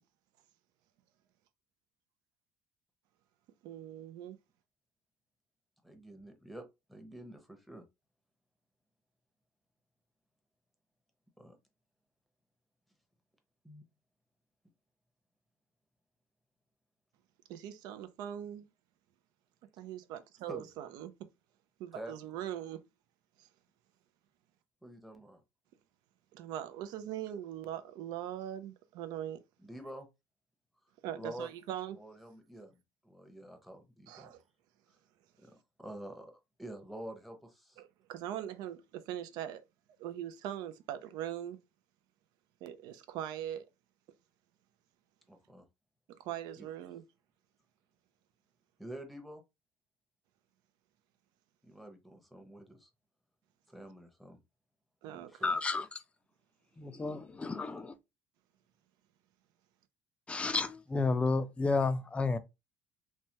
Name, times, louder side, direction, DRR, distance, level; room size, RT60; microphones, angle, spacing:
voice 1, 3.6-4.4 17.5-18.7 19.8-21.1 21.8-22.8 23.4-23.5 26.3-29.4 31.0-32.0 34.1-34.4 37.8-39.6 40.0-41.6 42.6-43.7 46.1-47.0 55.0-55.6, right 11 dB, 75° right, 0.5 m, -41 dB
voice 2, 5.8-6.6 6.9-7.8 11.4-11.5 13.6-13.8 20.5-20.7 21.9-22.1 24.8-25.4 29.6-30.1 31.2-31.5 31.9-32.8 33.0-34.4 35.4-35.5 35.8-36.3 36.6-37.8 45.3-45.6 46.6-46.7 48.8-49.4 51.6-52.9 53.7-54.4 55.1-55.8, right 1 dB, ahead, 0.8 m, -47 dB
voice 3, 55.4-56.0 56.8-57.9 60.3-62.4, left 3 dB, 15° left, 0.4 m, -31 dB
3.2 x 2.2 x 2.8 m
cardioid pair, 110°, 7 cm